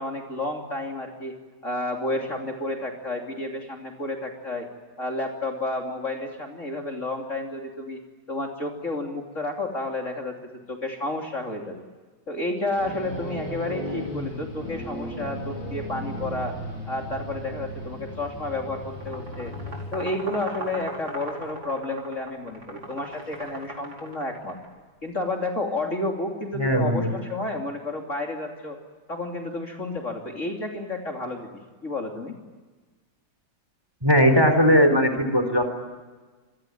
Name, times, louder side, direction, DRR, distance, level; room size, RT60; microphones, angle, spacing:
voice 1, 0.0-1.3 1.6-4.7 5.0-8.0 8.3-11.8 12.3-16.5 16.9-19.5 19.9-24.6 25.0-28.8 29.1-32.4, left 2 dB, 40° left, 1 dB, 3.3 m, -31 dB
sound 1, 12.8-19.8, equal, 85° left, 8.0 m, -35 dB
sound 2, 18.9-24.7, right 1 dB, 75° right, 5.7 m, -39 dB
voice 2, 26.6-27.1 34.0-35.7, equal, 10° right, 7 dB, 4.1 m, -19 dB
28.0 x 22.5 x 9.3 m, 1.3 s
omnidirectional pair, 2.1 m